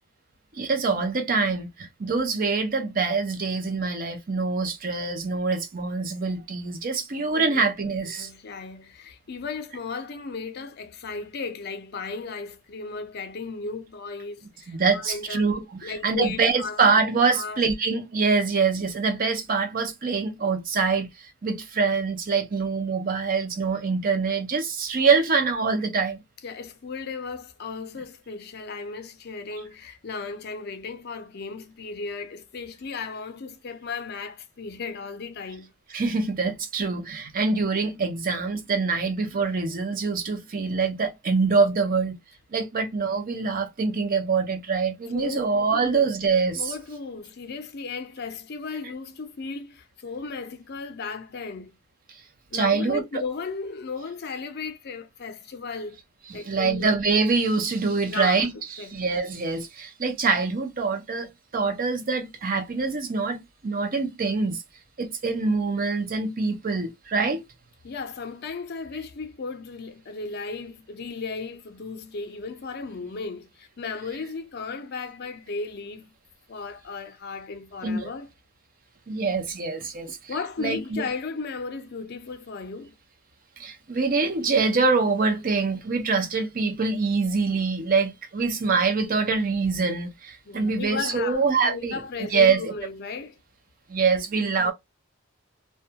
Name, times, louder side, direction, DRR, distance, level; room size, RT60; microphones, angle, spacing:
voice 1, 0.5-8.3 14.7-26.2 35.9-42.2 42.5-46.7 52.5-53.0 56.3-61.3 61.5-64.6 65.0-67.4 77.8-78.1 79.1-80.2 80.6-81.0 83.6-92.0 92.3-92.7 93.9-94.7, right 4 dB, 45° right, 0.6 m, -25 dB
voice 2, 8.2-15.5 15.8-17.6 26.4-35.7 45.1-45.4 45.7-46.1 46.5-51.7 52.5-56.0 56.3-56.9 58.1-58.5 58.8-59.0 67.8-76.1 76.5-78.3 80.3-82.9 90.5-93.4 94.6-94.7, left 4 dB, 50° left, 0.5 m, -35 dB
2.2 x 2.2 x 2.7 m
head